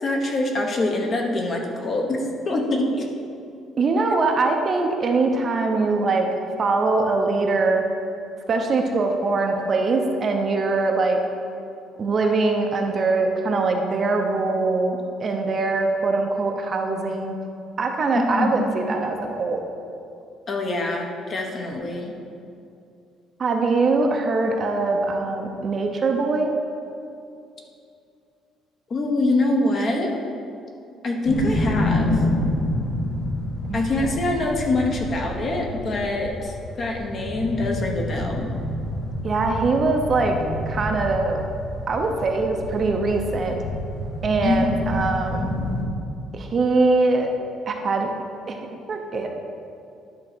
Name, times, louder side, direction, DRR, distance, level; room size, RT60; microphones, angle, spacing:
voice 1, 0.0-3.1 18.2-18.7 20.5-22.1 28.9-30.1 31.0-32.2 33.7-38.5 44.4-44.7, left 2 dB, 35° left, 2 dB, 0.9 m, -24 dB
voice 2, 3.8-6.3 6.6-7.9 8.5-11.2 12.0-17.4 17.8-19.6 23.4-26.5 33.7-33.8 39.2-40.4 40.7-41.4 41.9-43.6 44.2-45.5 46.3-47.3 47.7-48.1 48.5-48.6 48.9-49.4, right 3 dB, 30° right, 3 dB, 0.7 m, -22 dB
sound 1, 31.2-45.8, left 1 dB, 65° left, 1.4 m, -28 dB
10.5 x 3.7 x 6.1 m, 2.5 s
cardioid pair, 160°, 0 cm